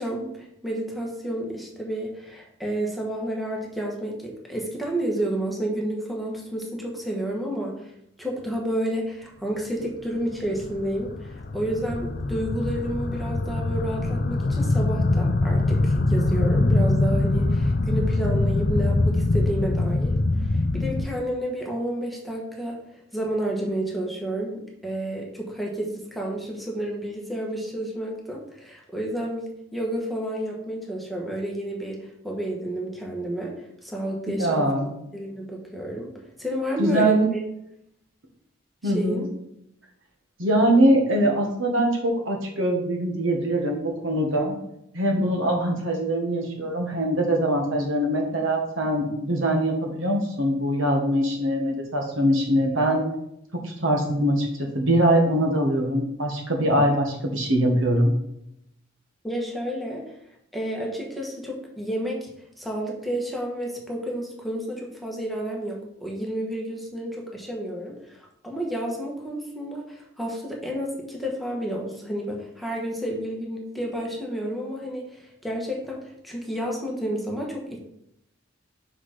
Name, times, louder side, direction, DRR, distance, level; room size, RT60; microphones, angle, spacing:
voice 1, 0.0-7.9 8.2-33.5 33.8-36.1 36.4-37.2 38.8-39.3 59.2-60.0 60.5-62.3 62.6-77.8, right 1 dB, ahead, -2 dB, 1.3 m, -30 dB
sound 1, 10.2-21.1, left 2 dB, 50° left, 0.5 m, -23 dB
voice 2, 34.3-34.9 36.8-37.3 38.8-39.2 40.4-44.6 44.9-53.0 53.5-58.1, right 1 dB, 75° right, 1 dB, 1.5 m, -23 dB
5.1 x 4.9 x 5.8 m, 0.77 s
head